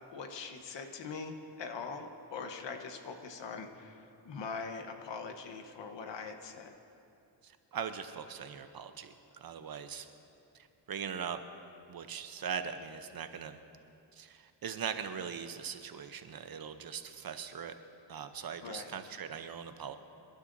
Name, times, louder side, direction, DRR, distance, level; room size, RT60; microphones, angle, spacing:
voice 1, 0.1-6.7 18.6-18.9, left 5 dB, 70° left, 5 dB, 1.2 m, -42 dB
voice 2, 7.4-10.1 10.9-11.4 11.9-13.6 14.1-17.7 18.1-20.0, right 7 dB, 55° right, 9 dB, 0.8 m, -40 dB
26.5 x 11.5 x 2.7 m, 2.7 s
cardioid pair, 105°, 44 cm